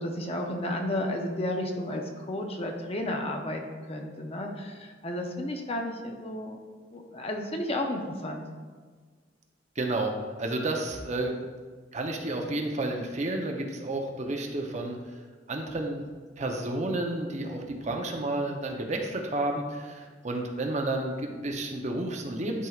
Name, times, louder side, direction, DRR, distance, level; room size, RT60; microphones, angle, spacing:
voice 1, 0.0-3.6 3.9-6.6 6.9-8.4, left 1 dB, 35° left, 3 dB, 0.7 m, -32 dB
voice 2, 9.8-11.4 11.9-15.2 15.5-16.1 16.4-22.7, right 2 dB, 40° right, 2 dB, 0.7 m, -31 dB
11.0 x 4.5 x 2.4 m, 1.5 s
head